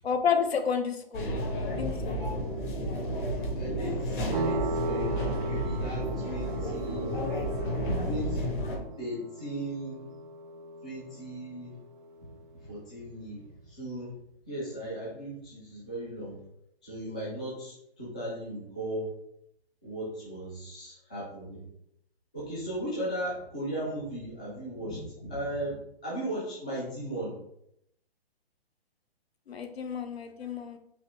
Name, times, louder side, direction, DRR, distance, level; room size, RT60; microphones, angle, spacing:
voice 1, 0.0-1.3 1.6-2.2 29.5-30.8, left 6 dB, 75° left, 7 dB, 0.8 m, -30 dB
sound 1, 1.1-8.8, equal, 50° left, 1.3 m, -31 dB
voice 2, 3.6-7.2 8.0-8.5 9.0-10.1 10.8-11.7 12.7-14.1 14.5-16.4 16.8-19.0 19.8-21.6 22.3-27.3, right 1 dB, 10° left, -8 dB, 0.3 m, -37 dB
sound 2, 4.3-12.7, right 2 dB, 50° right, 0.6 m, -38 dB
4.3 x 2.9 x 3.6 m, 0.75 s
hypercardioid pair, 150°, 31 cm